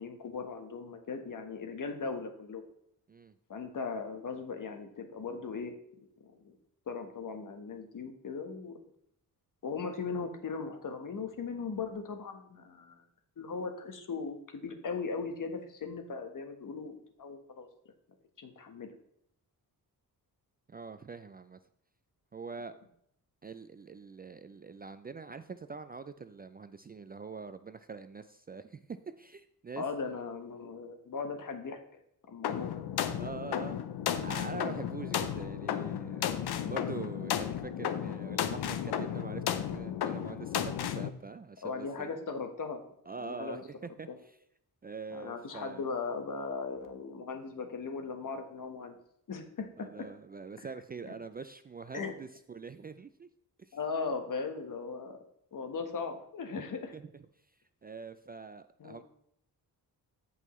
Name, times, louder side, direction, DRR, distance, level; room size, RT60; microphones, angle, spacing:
voice 1, 0.0-2.6 3.5-5.7 6.2-6.6 6.9-8.8 9.6-13.0 13.4-17.7 18.4-18.9 29.8-32.0 32.3-32.8 41.6-42.8 43.2-43.6 44.1-44.2 45.1-48.9 49.3-50.0 50.6-50.7 51.1-51.2 51.9-52.1 53.7-55.2 55.5-56.9 58.8-59.0, left 4 dB, 55° left, 6 dB, 1.3 m, -38 dB
voice 2, 20.7-21.6 22.3-22.7 23.4-29.8 33.2-42.2 43.1-44.4 44.8-45.8 49.8-53.3 53.6-53.8 56.9-57.2 57.8-59.0, right 4 dB, 25° right, 11 dB, 0.3 m, -44 dB
sound 1, 32.4-41.1, left 9 dB, 85° left, 0.7 m, -34 dB
14.0 x 5.5 x 3.1 m, 0.73 s
cardioid pair, 100°, 38 cm